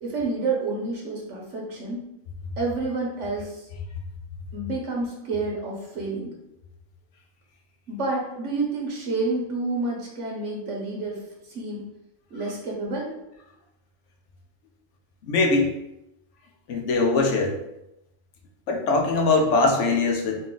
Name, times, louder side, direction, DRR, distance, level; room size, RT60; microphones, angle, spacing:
voice 1, 0.0-2.0 2.6-3.7 4.5-6.3 7.9-11.2 11.5-11.8 12.3-13.0, right 3 dB, 75° right, -2 dB, 1.2 m, -29 dB
voice 2, 15.2-15.7 16.7-17.6 18.7-20.4, left 3 dB, 75° left, 3 dB, 1.0 m, -21 dB
4.1 x 2.5 x 3.7 m, 0.88 s
omnidirectional pair, 1.3 m